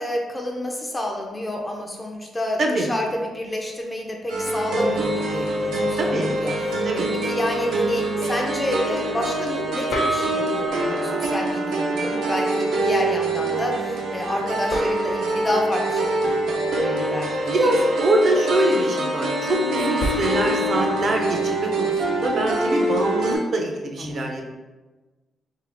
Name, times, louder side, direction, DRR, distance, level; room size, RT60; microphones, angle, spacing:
voice 1, 0.0-16.2 16.5-17.7 24.0-24.3, left 1 dB, 10° left, 1 dB, 0.4 m, -29 dB
sound 1, 4.3-23.4, right 1 dB, 85° right, 0.8 m, -24 dB
voice 2, 6.0-6.3 6.9-7.1 17.5-24.4, right 2 dB, 40° right, 2 dB, 0.5 m, -24 dB
sound 2, 9.9-12.3 14.7-17.2 20.0-23.1, equal, 75° left, 0.9 m, -34 dB
3.7 x 3.2 x 3.4 m, 1.2 s
wide cardioid pair, 175°, 0 cm